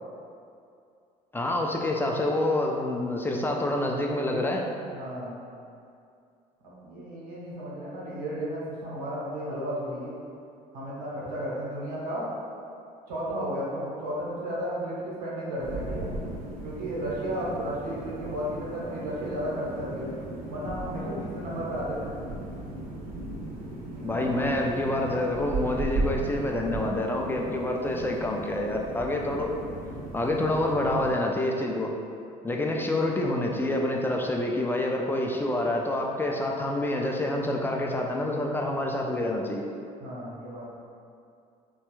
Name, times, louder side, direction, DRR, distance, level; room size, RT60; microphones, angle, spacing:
voice 1, 1.3-4.6 24.0-29.5 30.1-31.9 32.4-39.7, left 1 dB, 10° left, 0 dB, 0.4 m, -27 dB
voice 2, 4.9-5.4 6.6-10.2 10.7-12.3 13.1-16.1 16.6-20.1 20.5-22.2 23.9-24.5 29.1-29.5 38.7-38.8 40.0-40.8, equal, 85° right, -7 dB, 0.9 m, -34 dB
sound 1, 15.6-31.1, right 2 dB, 50° right, 0.7 m, -36 dB
3.2 x 2.2 x 3.0 m, 2.4 s
hypercardioid pair, 65°, 19 cm